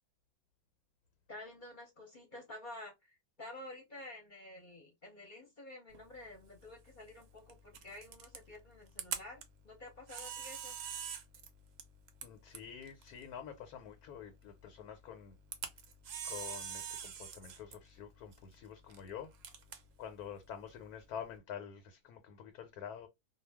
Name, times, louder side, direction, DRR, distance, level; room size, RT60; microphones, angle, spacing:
voice 1, 1.3-10.8, left 1 dB, 45° left, 0.7 m, -50 dB
Camera, 5.9-21.4, right 7 dB, 65° right, 0.6 m, -47 dB
voice 2, 12.2-15.4 16.2-19.3 20.0-23.1, left 8 dB, 90° left, 1.1 m, -47 dB
2.3 x 2.2 x 3.3 m
omnidirectional pair, 1.5 m